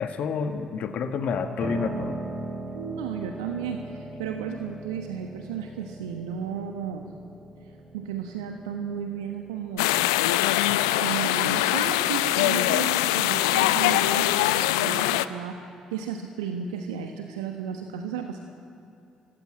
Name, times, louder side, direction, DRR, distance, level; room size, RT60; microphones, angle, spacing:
voice 1, 0.0-2.2, left 6 dB, 55° left, 7 dB, 1.5 m, -29 dB
Piano, 1.6-11.5, right 2 dB, 35° right, 4.2 m, -39 dB
voice 2, 2.7-7.1 7.6-9.9 11.0-15.6 15.9-18.4, right 7 dB, 75° right, 4 dB, 1.2 m, -34 dB
sound 1, 9.8-15.3, left 15 dB, 75° left, 0.6 m, -23 dB
25.0 x 19.0 x 8.9 m, 2.6 s
figure-of-eight pair, 45°, 3 cm